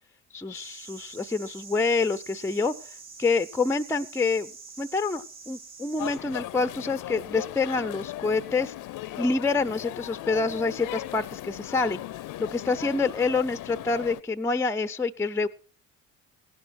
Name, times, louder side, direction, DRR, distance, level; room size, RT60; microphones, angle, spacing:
voice 1, 0.3-2.7 3.2-4.5 4.8-8.7 9.2-12.0 12.4-15.5, left 4 dB, 5° left, 13 dB, 0.5 m, -27 dB
sound 1, 0.5-6.2, right 5 dB, 65° right, 5.5 m, -46 dB
sound 2, 6.0-14.2, left 15 dB, 55° left, 0.6 m, -37 dB
17.0 x 11.0 x 4.5 m, 0.43 s
hypercardioid pair, 50°, 39 cm